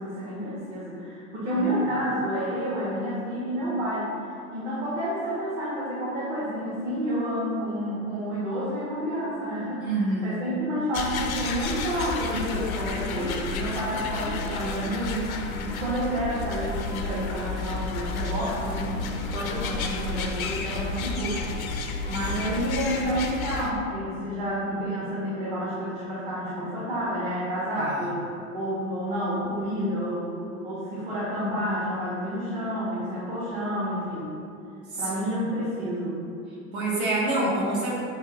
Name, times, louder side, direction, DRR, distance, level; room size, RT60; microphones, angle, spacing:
voice 1, 0.0-4.1 4.5-15.3 15.6-21.6 22.1-28.3 28.5-34.3 35.0-36.2, equal, 55° right, -9 dB, 1.4 m, -29 dB
voice 2, 9.8-10.4 27.8-28.1 34.9-35.0 35.4-35.5 36.7-38.0, right 2 dB, 75° right, -5 dB, 1.4 m, -27 dB
sound 1, 10.9-23.7, left 4 dB, 85° left, 0.5 m, -31 dB
5.7 x 2.3 x 3.8 m, 2.5 s
figure-of-eight pair, 75°, 41 cm